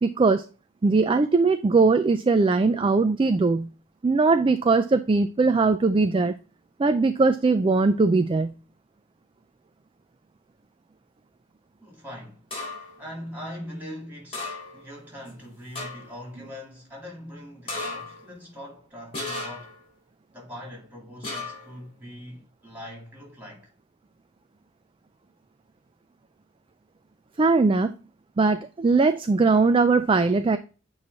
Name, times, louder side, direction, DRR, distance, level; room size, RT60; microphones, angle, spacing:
voice 1, 0.0-0.5 0.8-3.7 4.0-6.3 6.8-8.5 27.4-27.9 28.4-30.6, right 3 dB, 25° right, 0.4 m, -20 dB
voice 2, 11.8-12.4 13.0-19.8 20.3-23.7, equal, 10° right, 3.4 m, -41 dB
sound 1, 12.5-13.0 14.3-14.9 15.3-15.4 15.8-16.2 17.7-18.2 19.1-19.8 21.2-21.7, left 3 dB, 30° left, 3.8 m, -35 dB
8.5 x 3.2 x 4.1 m
head